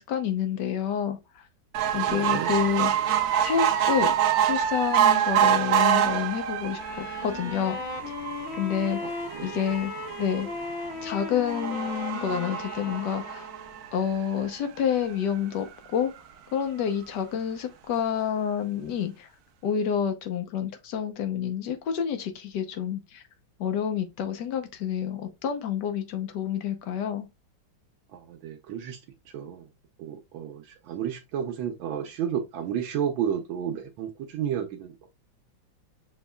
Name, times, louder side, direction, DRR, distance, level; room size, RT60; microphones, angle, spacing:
voice 1, 0.0-1.4 1.9-2.9 3.4-4.1 4.5-7.8 8.5-9.0 9.4-9.9 10.2-10.5 11.0-13.5 13.9-16.1 16.5-19.3 19.6-23.2 23.6-27.3, left 8 dB, 65° left, 1.3 m, -28 dB
sound 1, 1.7-14.3 14.9-15.0 15.3-15.4 15.6-15.7, right 9 dB, 70° right, 0.9 m, -26 dB
voice 2, 2.1-2.5 9.0-9.6 28.1-29.0 29.3-29.6 30.0-35.1, right 9 dB, 85° right, 1.5 m, -32 dB
Wind instrument woodwind instrument, 6.8-13.9, left 4 dB, 85° left, 1.8 m, -37 dB
7.1 x 2.9 x 2.2 m
omnidirectional pair, 2.1 m